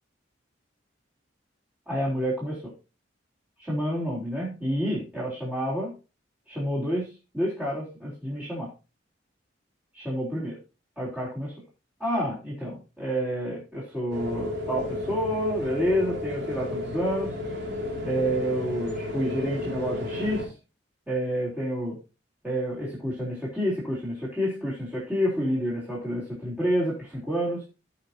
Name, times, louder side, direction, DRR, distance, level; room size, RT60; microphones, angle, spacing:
voice 1, 1.9-2.6 3.6-5.9 6.5-8.7 9.9-10.6 11.0-11.5 12.0-17.3 18.0-20.5 21.1-22.0 22.4-27.6, equal, 10° right, -8 dB, 3.7 m, -29 dB
sound 1, 14.1-20.4, left 2 dB, 60° right, 4.5 m, -32 dB
16.5 x 6.0 x 2.8 m, 0.30 s
head